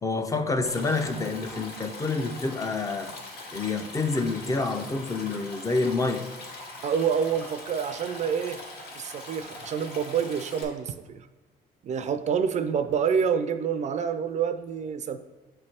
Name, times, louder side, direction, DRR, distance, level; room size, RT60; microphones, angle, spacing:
voice 1, 0.0-3.1 3.5-6.2, left 3 dB, 20° left, 7 dB, 0.4 m, -28 dB
Stream, 0.6-10.6, left 2 dB, 70° left, 1.5 m, -42 dB
voice 2, 6.8-8.6 8.9-11.3 11.8-15.2, right 7 dB, 45° right, 10 dB, 0.4 m, -27 dB
7.4 x 3.2 x 4.2 m, 1.2 s
cardioid pair, 110°, 17 cm